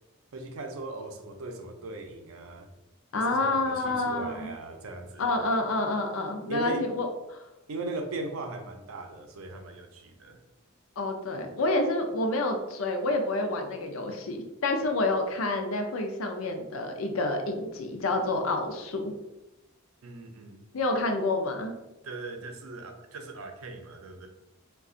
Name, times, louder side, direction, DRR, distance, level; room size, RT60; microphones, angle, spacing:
voice 1, 0.3-2.7 3.1-5.3 6.5-6.9 7.7-10.4 20.0-20.6 22.0-24.3, right 2 dB, 80° right, 5 dB, 0.5 m, -38 dB
voice 2, 3.1-4.5 5.2-7.4 11.0-19.1 20.7-21.7, left 2 dB, 75° left, 5 dB, 0.5 m, -28 dB
2.4 x 2.3 x 3.7 m, 0.96 s
head